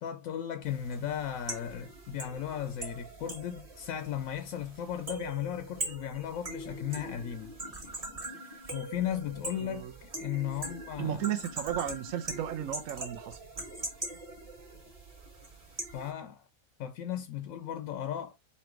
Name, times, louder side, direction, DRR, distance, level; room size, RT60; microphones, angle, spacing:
voice 1, 0.0-7.5 8.7-11.5 15.9-16.4 16.8-18.3, left 10 dB, 80° left, 1.1 m, -36 dB
sound 1, 0.6-16.1, right 2 dB, 25° right, 1.4 m, -42 dB
voice 2, 9.6-9.9 11.0-13.4, right 11 dB, 80° right, 1.1 m, -34 dB
4.3 x 2.6 x 4.4 m
omnidirectional pair, 1.4 m